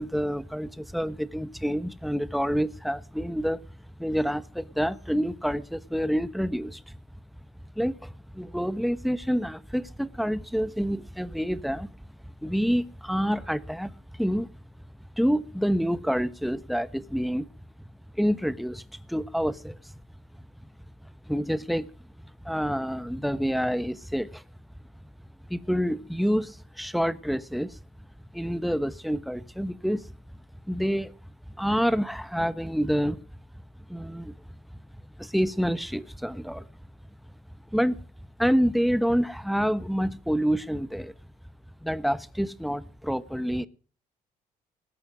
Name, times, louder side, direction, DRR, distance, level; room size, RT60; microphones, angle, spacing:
voice 1, 0.0-3.6 4.0-7.0 7.8-12.0 12.2-14.5 15.2-17.5 18.1-19.8 21.3-21.9 22.4-24.4 25.5-27.8 28.3-30.1 30.7-31.1 31.6-33.2 33.9-34.3 35.2-36.6 37.7-38.0 38.4-41.1 41.8-43.7, equal, ahead, 1.1 m, -27 dB
19.5 x 8.6 x 6.2 m
cardioid pair, 85°, 15 cm